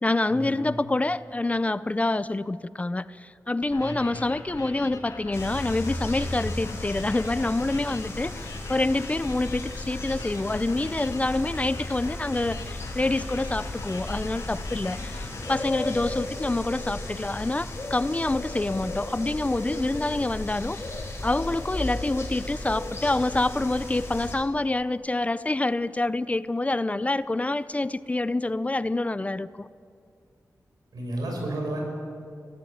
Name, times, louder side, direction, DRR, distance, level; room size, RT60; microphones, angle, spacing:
voice 1, 0.0-20.8 21.2-29.7, left 2 dB, 20° left, 0.5 m, -27 dB
sound 1, 3.6-16.0, left 3 dB, 80° left, 3.2 m, -42 dB
sound 2, 5.3-24.4, left 2 dB, 40° left, 4.6 m, -35 dB
voice 2, 30.9-31.8, right 1 dB, 90° right, 6.8 m, -31 dB
24.5 x 18.0 x 8.8 m
wide cardioid pair, 110°, 6 cm